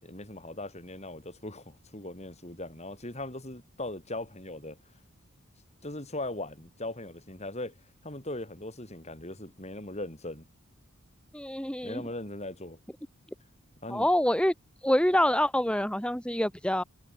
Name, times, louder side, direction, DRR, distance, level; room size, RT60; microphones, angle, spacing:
voice 1, 0.0-4.8 5.8-7.7 8.0-10.4 11.8-12.8 13.8-14.1, left 1 dB, 30° left, 5.0 m, -39 dB
voice 2, 11.3-12.0 13.9-14.5 14.8-16.8, left 1 dB, 5° left, 1.5 m, -26 dB
head